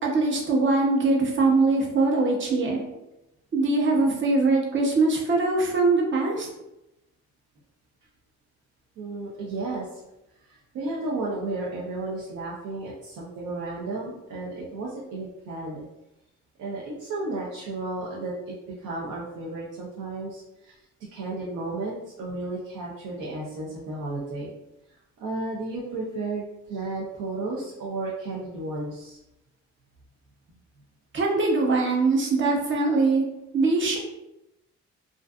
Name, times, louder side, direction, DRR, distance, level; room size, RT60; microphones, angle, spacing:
voice 1, 0.0-2.8 3.5-6.5 31.1-33.2 33.5-34.0, right 3 dB, 40° right, -1 dB, 0.7 m, -22 dB
voice 2, 9.0-9.9 10.5-15.8 16.6-20.7 21.1-24.5 25.2-29.2, right 2 dB, 80° right, -5 dB, 0.6 m, -33 dB
2.5 x 2.3 x 2.3 m, 0.91 s
cardioid pair, 90°, 30 cm